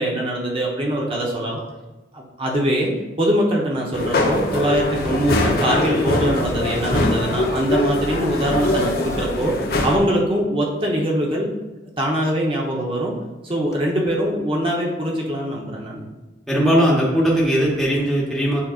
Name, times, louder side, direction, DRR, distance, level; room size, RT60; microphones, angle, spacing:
voice 1, 0.0-1.6 2.1-2.9 3.2-9.5 9.8-11.5 12.0-13.1 13.4-16.1, equal, 30° right, -2 dB, 0.9 m, -22 dB
sound 1, 3.9-10.0, left 2 dB, 55° left, 0.8 m, -22 dB
sound 2, 6.3-9.7 13.6-13.7, left 1 dB, 15° left, 0.6 m, -35 dB
voice 2, 16.5-18.6, equal, ahead, -6 dB, 1.1 m, -18 dB
8.6 x 5.1 x 2.5 m, 1.1 s
head